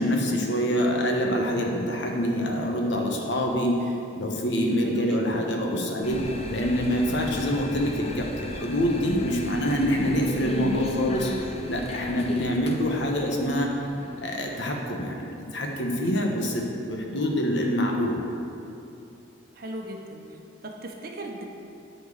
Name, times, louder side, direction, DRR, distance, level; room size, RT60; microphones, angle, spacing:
voice 1, 0.0-6.2 6.5-11.3 11.7-13.7 14.2-18.2, equal, 70° left, 1 dB, 1.2 m, -26 dB
voice 2, 4.8-5.5 12.1-12.4 19.5-20.4 20.6-21.4, right 1 dB, 50° right, 1 dB, 1.0 m, -39 dB
sound 1, 6.0-14.7, left 2 dB, 35° left, 0.6 m, -36 dB
10.0 x 4.5 x 6.6 m, 2.6 s
head